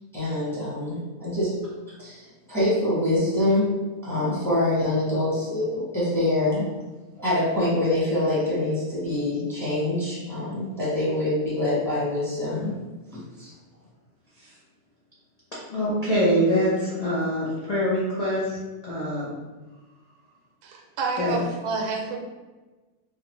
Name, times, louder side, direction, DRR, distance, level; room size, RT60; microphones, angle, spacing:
voice 1, 0.1-1.5 2.0-2.2 2.5-3.7 4.0-6.7 7.2-12.8 13.4-13.5, left 1 dB, ahead, -9 dB, 0.8 m, -25 dB
voice 2, 15.7-18.6 18.8-19.3 21.2-21.4, equal, 55° left, -8 dB, 0.4 m, -24 dB
voice 3, 20.6-22.2, right 4 dB, 80° right, 1 dB, 1.1 m, -29 dB
3.2 x 2.3 x 3.0 m, 1.2 s
omnidirectional pair, 1.7 m